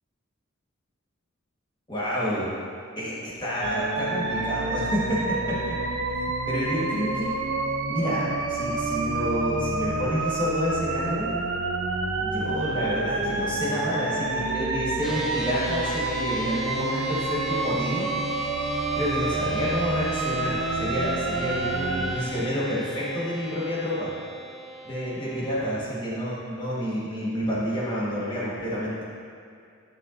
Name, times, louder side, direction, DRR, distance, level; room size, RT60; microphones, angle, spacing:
voice 1, 1.9-2.5 3.0-5.8 6.5-7.3 7.9-11.4 12.2-18.1 18.9-24.1 24.8-29.0, equal, 20° left, -7 dB, 1.3 m, -29 dB
sound 1, 3.6-22.2, right 3 dB, 75° right, 0.6 m, -28 dB
sound 2, 15.0-25.8, right 1 dB, ahead, 0.5 m, -38 dB
9.1 x 5.5 x 2.5 m, 2.4 s
head